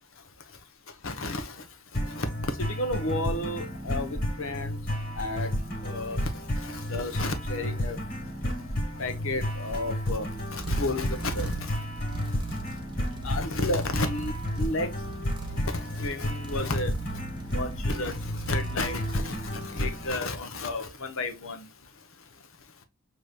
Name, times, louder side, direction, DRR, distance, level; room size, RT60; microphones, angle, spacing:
voice 1, 1.0-1.5 2.2-2.3 2.6-4.8 5.2-5.5 5.8-6.2 6.9-8.0 9.0-10.3 10.5-11.7 13.2-14.9 16.0-16.9 17.5-18.2 18.5-21.6, left 2 dB, 65° left, 0.9 m, -32 dB
sound 1, 1.9-20.1, equal, 40° left, 2.0 m, -32 dB
sound 2, 9.3-19.9, right 2 dB, 20° right, 0.8 m, -40 dB
6.6 x 3.0 x 2.3 m
head